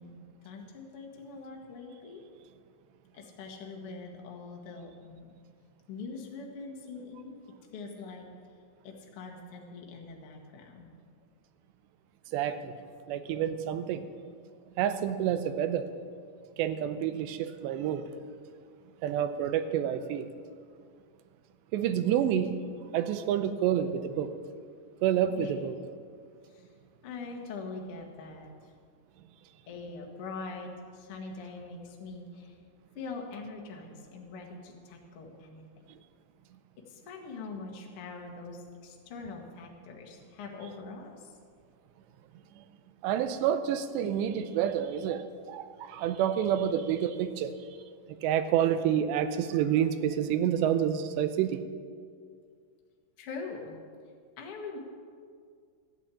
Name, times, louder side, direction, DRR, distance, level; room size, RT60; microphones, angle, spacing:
voice 1, 0.0-2.2 3.1-5.4 5.9-7.4 7.7-8.3 8.8-10.9 25.3-25.5 26.5-26.7 27.0-28.5 29.7-32.6 32.9-35.6 36.9-41.3 53.2-53.8 54.4-54.8, left 4 dB, 60° left, 0 dB, 1.4 m, -43 dB
voice 2, 12.3-12.7 13.1-14.0 14.8-15.9 16.6-18.1 19.0-20.3 21.7-22.5 22.9-24.3 25.0-25.7 43.0-47.5 48.2-51.6, right 9 dB, 80° right, 10 dB, 2.8 m, -28 dB
13.0 x 8.6 x 8.4 m, 2.1 s
omnidirectional pair, 5.1 m